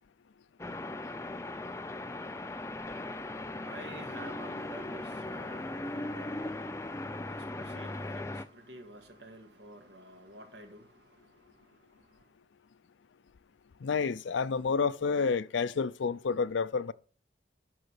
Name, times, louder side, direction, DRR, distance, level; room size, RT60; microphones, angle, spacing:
sound 1, 0.6-8.4, left 2 dB, 15° left, 0.4 m, -38 dB
voice 1, 2.8-12.3, right 1 dB, 75° right, 2.0 m, -51 dB
voice 2, 13.8-16.9, left 5 dB, 85° left, 0.5 m, -29 dB
12.0 x 4.0 x 6.6 m
head